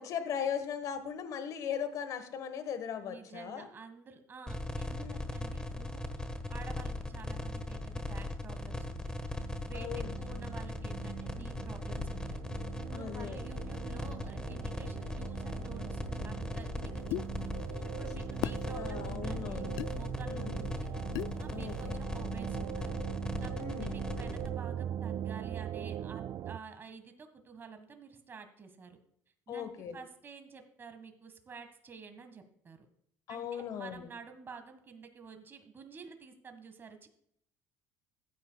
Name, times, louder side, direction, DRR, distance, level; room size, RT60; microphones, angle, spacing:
voice 1, 0.0-3.7 5.0-5.2 9.7-10.1 12.9-13.4 18.7-19.7 20.2-20.6 21.5-22.0 23.6-23.9 29.5-30.0 33.3-34.1, left 8 dB, 60° left, 10 dB, 1.3 m, -38 dB
voice 2, 3.0-6.0 6.5-9.2 9.7-12.4 12.9-20.9 21.4-23.0 23.4-23.5 23.8-29.0 29.5-32.9 33.3-37.1, right 5 dB, 35° right, 7 dB, 1.6 m, -50 dB
sound 1, 4.5-24.5, left 2 dB, 10° left, 1.3 m, -38 dB
sound 2, 9.3-26.6, right 10 dB, 50° right, 0.4 m, -41 dB
sound 3, 17.1-17.3 18.4-18.6 19.8-19.9 21.1-21.4, left 16 dB, 75° left, 0.3 m, -34 dB
15.0 x 9.2 x 2.3 m, 0.71 s
supercardioid pair, 100°, 7 cm